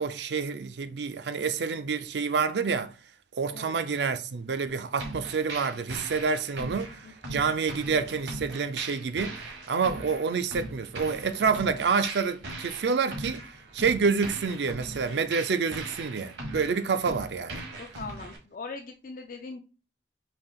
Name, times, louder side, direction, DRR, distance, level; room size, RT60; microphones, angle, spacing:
voice 1, 0.0-2.9 3.3-7.0 7.3-9.4 9.7-13.4 13.7-17.6, right 5 dB, 75° right, 0.5 m, -28 dB
sound 1, 5.0-18.4, right 2 dB, 90° right, 1.4 m, -40 dB
voice 2, 7.0-7.8 17.8-19.6, left 4 dB, 50° left, 0.4 m, -41 dB
5.6 x 3.5 x 2.3 m
head